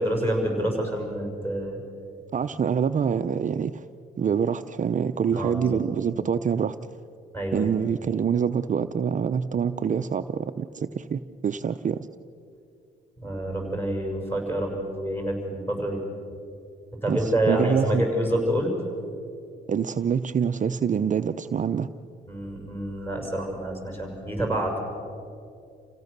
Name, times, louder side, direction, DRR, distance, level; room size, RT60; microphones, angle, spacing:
voice 1, 0.0-1.8 5.3-5.8 7.3-7.7 13.2-16.0 17.0-18.7 22.3-24.8, right 1 dB, 10° left, 1 dB, 6.1 m, -27 dB
voice 2, 2.3-3.8 4.2-6.8 7.5-12.1 17.1-18.0 19.7-21.9, right 7 dB, 40° right, 10 dB, 0.6 m, -26 dB
28.5 x 16.5 x 6.7 m, 2.5 s
cardioid pair, 90°, 20 cm